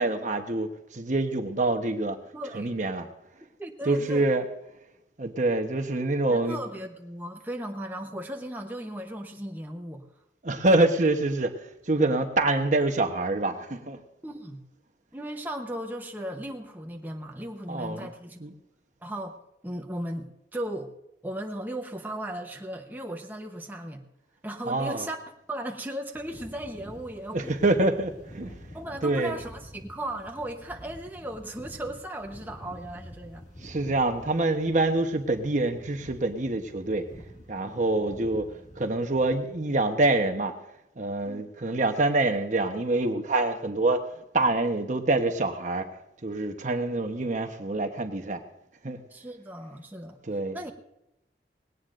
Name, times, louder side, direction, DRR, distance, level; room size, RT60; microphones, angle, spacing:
voice 1, 0.0-2.2 2.5-3.1 3.9-4.4 5.2-6.6 10.4-11.6 11.9-14.0 17.7-18.1 18.4-18.5 24.7-25.0 27.3-28.5 29.0-29.3 33.6-37.1 37.5-38.5 38.8-40.5 41.0-44.0 44.3-45.9 46.2-48.4 48.8-49.0 50.3-50.7, right 2 dB, 45° right, 6 dB, 1.0 m, -26 dB
voice 2, 2.3-2.7 3.6-4.3 6.3-10.1 14.2-14.6 15.1-18.4 19.0-19.4 19.6-20.9 21.2-24.0 24.4-27.6 28.7-33.5 41.3-41.4 49.1-50.2 50.5-50.7, right 1 dB, 10° right, 2 dB, 1.0 m, -36 dB
sound 1, 26.1-39.6, equal, 40° left, 2.2 m, -48 dB
19.0 x 17.5 x 2.6 m, 0.87 s
head